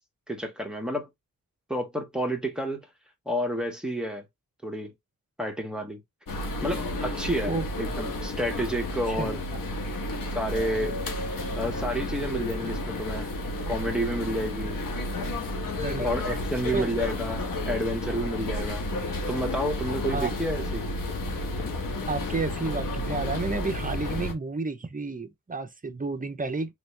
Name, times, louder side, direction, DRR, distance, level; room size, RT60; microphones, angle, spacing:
voice 1, 0.3-1.1 1.7-2.8 3.3-4.2 4.6-4.9 5.4-6.0 6.6-7.5 7.8-9.4 10.3-11.0 11.6-13.3 13.7-14.8 16.0-18.9 19.3-20.9, equal, ahead, 1.2 m, -30 dB
sound 1, 6.3-24.3, left 1 dB, 80° left, 1.2 m, -31 dB
voice 2, 15.8-16.1 16.7-16.9 20.1-20.3 22.1-26.7, right 3 dB, 25° right, 0.7 m, -31 dB
3.4 x 3.0 x 3.2 m
cardioid pair, 75°, 33 cm